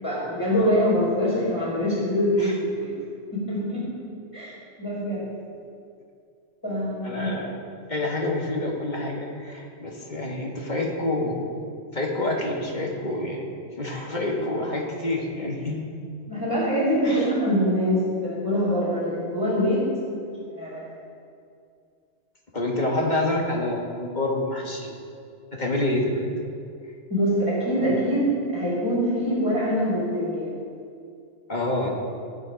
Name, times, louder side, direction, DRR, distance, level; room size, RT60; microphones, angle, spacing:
voice 1, 0.0-2.9 3.3-3.9 4.3-5.2 6.6-7.3 16.3-19.8 20.5-20.9 27.1-30.6, equal, 15° left, -10 dB, 3.5 m, -24 dB
voice 2, 7.0-7.5 7.9-11.4 11.9-13.5 13.8-15.8 17.0-17.3 22.5-25.0 25.5-26.3 31.5-31.9, left 2 dB, 40° left, -1 dB, 1.8 m, -27 dB
15.0 x 7.3 x 5.2 m, 2.3 s
omnidirectional pair, 1.2 m